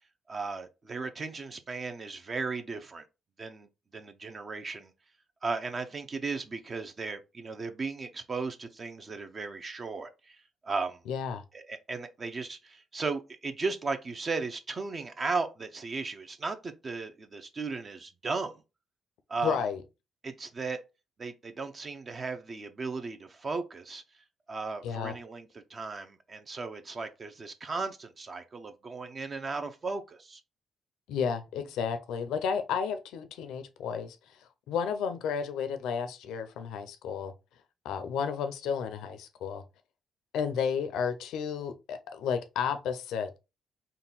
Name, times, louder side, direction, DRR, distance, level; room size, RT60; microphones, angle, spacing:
voice 1, 0.3-3.0 3.4-4.9 5.4-11.0 11.5-18.6 19.3-19.6 20.2-20.8 21.2-24.0 24.5-30.4, right 4 dB, 40° right, 0.5 m, -36 dB
voice 2, 11.1-11.4 19.4-19.8 24.8-25.1 31.1-34.2 34.7-37.3 37.8-39.6 40.3-43.4, left 7 dB, 85° left, 0.5 m, -32 dB
3.8 x 2.2 x 4.0 m
cardioid pair, 90°, 0 cm